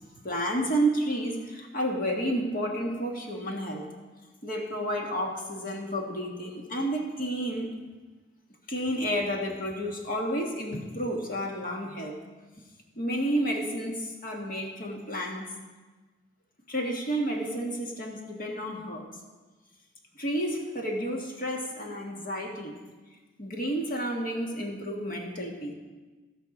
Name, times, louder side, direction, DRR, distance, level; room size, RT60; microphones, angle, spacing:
voice 1, 0.0-3.9 4.4-7.8 8.7-12.2 13.0-15.5 16.7-19.1 20.2-22.8 23.4-25.7, right 1 dB, 45° left, 0 dB, 1.7 m, -31 dB
16.0 x 5.7 x 5.4 m, 1.3 s
head